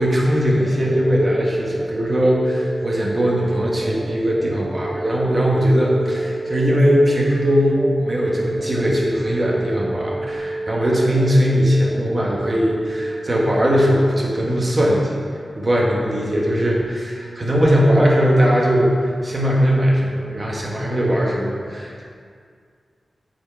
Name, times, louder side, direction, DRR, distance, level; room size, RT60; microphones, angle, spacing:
voice 1, 0.0-15.1 15.6-18.9 19.2-22.0, equal, 35° right, -3 dB, 1.4 m, -19 dB
sound 1, 0.6-13.0, right 2 dB, 5° right, 1.5 m, -29 dB
8.2 x 4.5 x 4.6 m, 2.1 s
wide cardioid pair, 105°, 0 cm